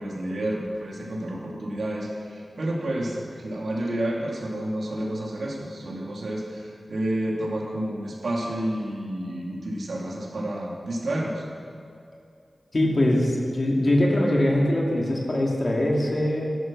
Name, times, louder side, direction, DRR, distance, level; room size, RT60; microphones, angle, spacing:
voice 1, 0.0-11.4, right 1 dB, 80° right, -2 dB, 2.6 m, -30 dB
voice 2, 12.7-16.5, left 1 dB, 50° left, -2 dB, 2.6 m, -22 dB
14.0 x 11.5 x 6.2 m, 2.4 s
wide cardioid pair, 90°, 0 cm